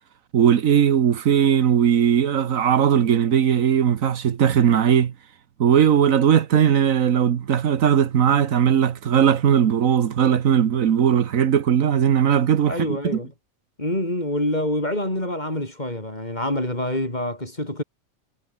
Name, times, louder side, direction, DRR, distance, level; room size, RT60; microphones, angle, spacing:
voice 1, 0.3-5.1 5.6-13.0, right 8 dB, 75° right, 1.5 m, -18 dB
voice 2, 12.7-13.3 13.8-17.8, left 1 dB, 30° left, 6.3 m, -26 dB
omnidirectional pair, 1.4 m